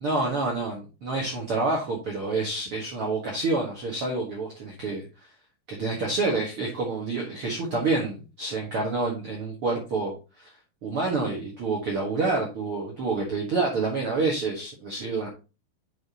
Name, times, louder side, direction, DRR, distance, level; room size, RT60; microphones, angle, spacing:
voice 1, 0.0-5.1 5.7-10.5 10.8-15.3, right 3 dB, 50° right, -1 dB, 1.9 m, -28 dB
8.3 x 6.1 x 2.9 m, 0.30 s
omnidirectional pair, 4.5 m